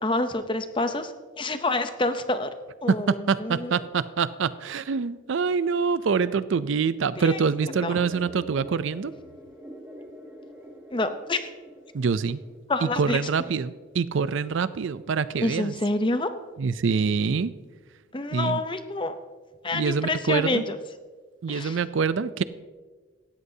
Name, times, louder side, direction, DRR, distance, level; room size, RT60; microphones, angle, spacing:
voice 1, 0.0-2.5 2.8-3.8 7.2-7.4 7.8-8.0 10.9-11.5 12.7-13.2 15.4-16.3 18.1-19.2 19.6-20.8 21.5-21.8, left 2 dB, 25° left, 9 dB, 0.7 m, -27 dB
voice 2, 2.9-9.1 11.9-12.4 12.8-15.7 16.6-17.5 18.3-18.6 19.7-20.6 21.4-22.4, right 5 dB, 65° right, 15 dB, 0.4 m, -25 dB
sound 1, 7.6-12.6, equal, 10° right, 1.3 m, -45 dB
17.5 x 13.5 x 2.8 m, 1.4 s
head